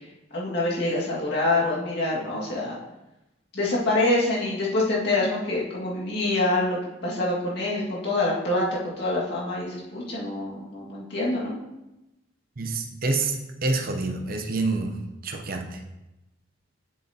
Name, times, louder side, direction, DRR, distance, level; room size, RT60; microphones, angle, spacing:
voice 1, 0.3-2.8 3.5-11.6, left 2 dB, 60° left, -5 dB, 2.0 m, -26 dB
voice 2, 12.6-13.3 13.6-14.9 15.2-15.6, right 3 dB, 50° right, 3 dB, 0.8 m, -27 dB
7.8 x 7.3 x 2.8 m, 0.97 s
head